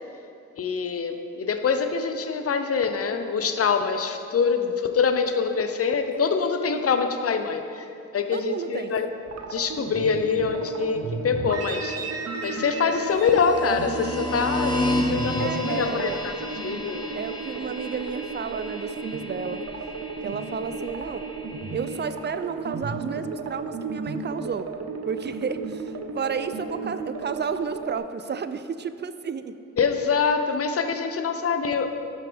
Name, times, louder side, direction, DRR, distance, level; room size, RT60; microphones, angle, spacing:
voice 1, 0.6-7.8 8.1-9.1 9.5-12.0 12.4-16.3 16.6-17.1 29.8-31.9, left 5 dB, 45° left, 7 dB, 0.8 m, -25 dB
voice 2, 8.3-8.9 15.4-16.2 17.1-19.6 20.2-21.3 21.7-24.7 25.1-29.5, right 6 dB, 35° right, 11 dB, 0.5 m, -32 dB
sound 1, 9.2-28.0, right 4 dB, 50° right, 0.8 m, -34 dB
sound 2, 13.2-22.0, left 1 dB, 15° left, 2.0 m, -32 dB
11.0 x 6.0 x 3.5 m, 2.6 s
supercardioid pair, 50°, 33 cm